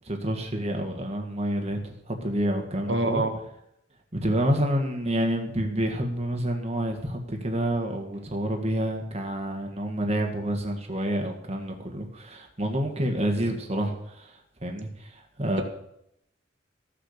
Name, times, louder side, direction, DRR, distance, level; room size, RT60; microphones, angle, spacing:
voice 1, 0.0-3.2 4.1-15.6, right 1 dB, 35° right, 3 dB, 1.7 m, -28 dB
voice 2, 2.9-3.3, right 2 dB, 75° right, 5 dB, 1.7 m, -24 dB
14.5 x 6.8 x 6.6 m, 0.79 s
head